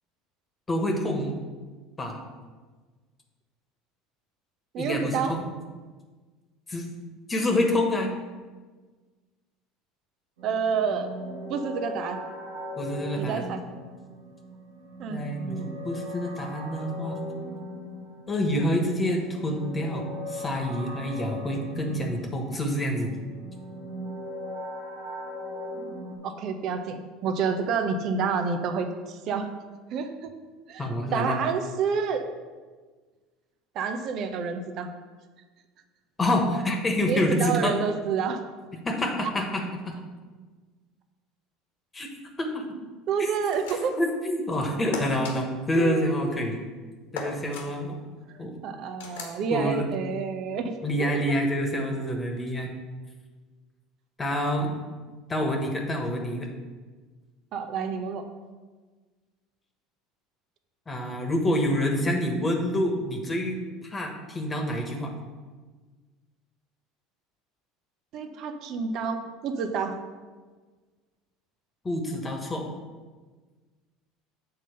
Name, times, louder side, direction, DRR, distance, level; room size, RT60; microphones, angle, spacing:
voice 1, 0.7-1.4 2.0-2.2 4.8-5.5 6.7-6.9 7.3-8.1 12.8-13.5 15.1-17.2 18.3-23.1 30.8-31.4 36.2-37.8 38.8-40.0 41.9-42.1 42.4-42.6 43.2-43.3 44.0-46.6 47.1-48.0 48.4-48.5 49.5-49.9 50.8-52.7 54.2-54.8 55.3-56.5 60.9-65.1 71.8-72.7, left 1 dB, 25° left, 2 dB, 1.4 m, -27 dB
voice 2, 4.7-5.4 10.4-11.2 11.5-12.2 13.2-13.6 15.0-15.2 25.7-25.9 26.2-29.5 29.9-30.3 30.7-32.2 33.7-34.9 37.1-38.4 43.1-44.0 45.7-46.4 48.3-50.7 51.0-51.2 57.5-58.3 68.1-70.0, right 6 dB, 55° right, 7 dB, 0.8 m, -29 dB
sound 1, 10.4-26.2, equal, 80° right, 1.6 m, -39 dB
sound 2, 43.5-44.1 44.9-45.4 47.1-47.7 49.0-49.4, left 4 dB, 80° left, 1.5 m, -36 dB
7.4 x 3.8 x 6.5 m, 1.4 s
hypercardioid pair, 85°, 0 cm